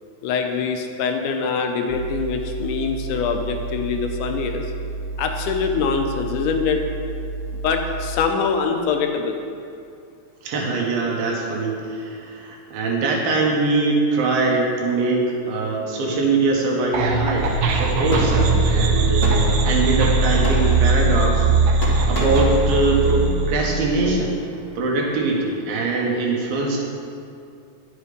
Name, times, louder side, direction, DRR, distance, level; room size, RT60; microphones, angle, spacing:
voice 1, 0.2-4.7 5.2-6.8 7.5-9.4, left 5 dB, 80° left, 4 dB, 2.1 m, -24 dB
sound 1, 1.9-8.2, right 3 dB, 30° right, 0.7 m, -31 dB
voice 2, 10.4-21.5 22.1-24.4 24.8-26.8, right 3 dB, 90° right, -1 dB, 3.3 m, -22 dB
Fireworks, 16.9-26.2, left 1 dB, 45° left, 1.0 m, -35 dB
sound 2, 16.9-24.1, right 3 dB, 75° right, 2.1 m, -20 dB
11.0 x 7.4 x 5.0 m, 2.5 s
omnidirectional pair, 4.1 m